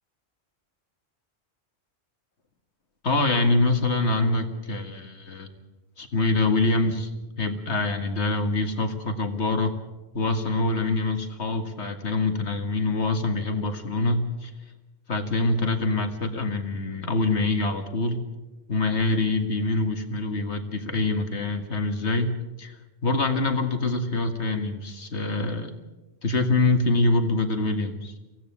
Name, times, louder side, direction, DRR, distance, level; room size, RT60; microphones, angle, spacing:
voice 1, 3.0-5.5 6.0-7.1 7.4-9.7 10.1-14.5 15.1-18.2 18.7-25.7 26.2-28.1, left 2 dB, 85° left, 7 dB, 2.1 m, -25 dB
23.5 x 16.5 x 7.3 m, 1.1 s
omnidirectional pair, 1.1 m